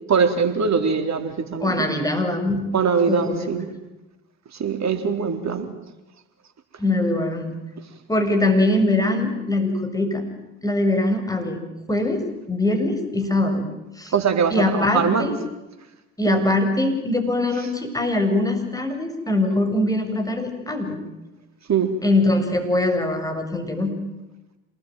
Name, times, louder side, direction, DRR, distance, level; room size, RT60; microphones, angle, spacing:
voice 1, 0.1-1.9 2.7-3.7 4.6-5.7 14.1-15.3 16.3-16.4 21.7-21.9, right 6 dB, 40° right, 7 dB, 4.1 m, -22 dB
voice 2, 1.6-2.6 3.1-3.5 6.8-7.6 8.1-10.2 10.6-11.6 11.9-12.2 12.5-13.7 14.0-14.1 14.5-15.4 16.2-21.0 22.0-23.9, left 2 dB, 10° left, 4 dB, 7.1 m, -22 dB
27.5 x 20.0 x 9.3 m, 1.0 s
hypercardioid pair, 55°, 40 cm